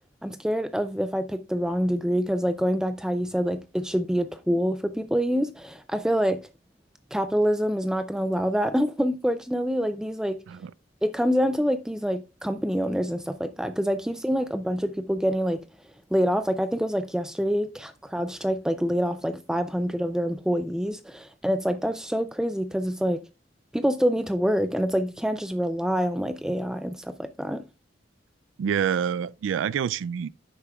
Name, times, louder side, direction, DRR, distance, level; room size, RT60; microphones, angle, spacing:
voice 1, 0.2-6.5 7.1-10.4 11.0-15.6 16.1-23.2 23.7-27.6, equal, 5° right, 0.3 m, -26 dB
voice 2, 28.6-30.3, right 8 dB, 85° right, 0.3 m, -27 dB
10.5 x 8.2 x 2.3 m
head